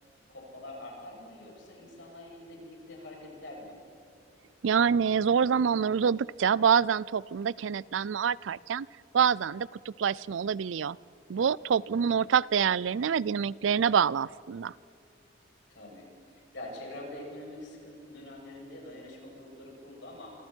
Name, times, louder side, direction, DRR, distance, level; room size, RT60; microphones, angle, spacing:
voice 1, 0.3-3.7 11.7-12.3 15.7-20.3, left 1 dB, 70° left, -2 dB, 7.9 m, -45 dB
voice 2, 4.6-8.9 9.1-11.0 11.3-14.7, right 7 dB, 85° right, 22 dB, 0.4 m, -26 dB
28.0 x 26.5 x 4.5 m, 2.5 s
head